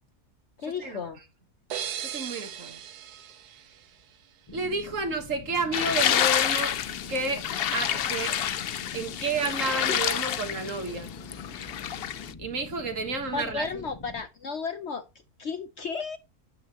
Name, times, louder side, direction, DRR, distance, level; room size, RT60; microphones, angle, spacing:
voice 1, 0.6-1.2 13.3-15.0 15.4-16.2, left 5 dB, 55° left, 0.8 m, -33 dB
sound 1, 1.7-4.5, right 10 dB, 80° right, 1.3 m, -38 dB
voice 2, 2.0-2.8 4.5-6.8 7.1-8.4 8.9-11.1 12.4-13.9, right 3 dB, 55° right, 1.8 m, -31 dB
sound 2, 4.5-14.2, left 3 dB, 20° left, 1.0 m, -45 dB
sound 3, 5.7-12.3, left 10 dB, 85° left, 0.5 m, -28 dB
9.2 x 7.9 x 3.0 m
omnidirectional pair, 1.7 m